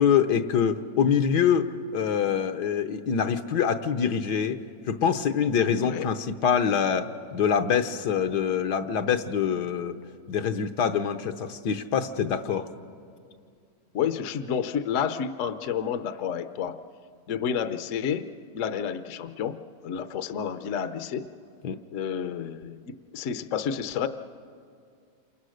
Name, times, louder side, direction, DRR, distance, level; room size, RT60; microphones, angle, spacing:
voice 1, 0.0-4.6 4.9-9.9 10.3-12.7 21.6-21.8, left 7 dB, 75° left, 7 dB, 1.5 m, -25 dB
voice 2, 13.9-16.8 17.3-18.3 18.5-21.3 21.9-24.1, left 8 dB, 55° left, 10 dB, 1.0 m, -30 dB
28.0 x 27.5 x 6.4 m, 2.3 s
omnidirectional pair, 1.8 m